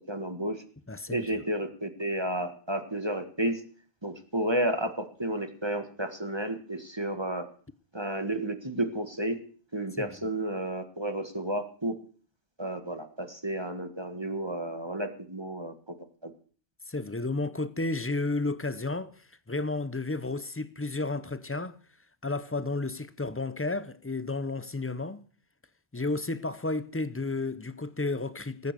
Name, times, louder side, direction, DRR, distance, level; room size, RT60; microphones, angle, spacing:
voice 1, 0.1-0.6 1.1-3.6 4.0-7.4 7.9-9.4 9.7-11.9 12.6-15.9 16.2-16.3, right 1 dB, 25° right, 1.7 m, -32 dB
voice 2, 0.9-1.2 10.0-10.3 16.9-21.8 22.2-25.2 25.9-28.7, left 3 dB, 15° left, 0.6 m, -32 dB
19.0 x 9.4 x 6.8 m
omnidirectional pair, 1.1 m